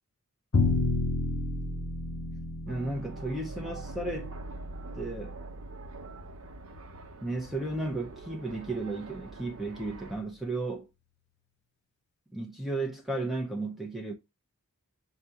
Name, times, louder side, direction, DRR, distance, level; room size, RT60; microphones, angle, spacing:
Bowed string instrument, 0.5-6.7, left 3 dB, 50° left, 0.6 m, -32 dB
voice 1, 2.7-4.4 4.9-5.4 7.2-10.9 12.3-14.1, right 2 dB, ahead, 0.6 m, -34 dB
sound 1, 2.7-10.2, right 2 dB, 70° right, 0.8 m, -47 dB
6.6 x 2.3 x 2.7 m
head